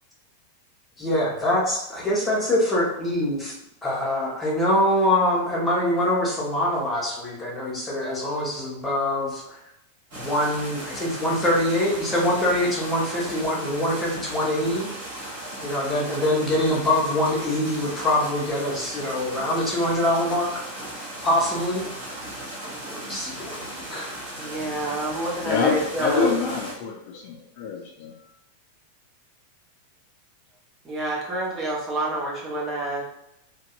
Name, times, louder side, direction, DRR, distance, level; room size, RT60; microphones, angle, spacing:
voice 1, 1.0-3.5 3.8-9.4 10.1-14.9 15.6-20.7 21.2-21.8 22.9-24.3, left 1 dB, 15° left, -4 dB, 0.9 m, -24 dB
sound 1, 10.1-26.7, right 1 dB, 45° right, 1.2 m, -37 dB
voice 2, 24.4-26.3 30.8-33.0, right 1 dB, 20° right, -3 dB, 0.8 m, -28 dB
voice 3, 25.4-28.1, left 5 dB, 45° left, 1 dB, 0.3 m, -26 dB
2.6 x 2.1 x 2.5 m, 0.80 s
figure-of-eight pair, 90°, 0 cm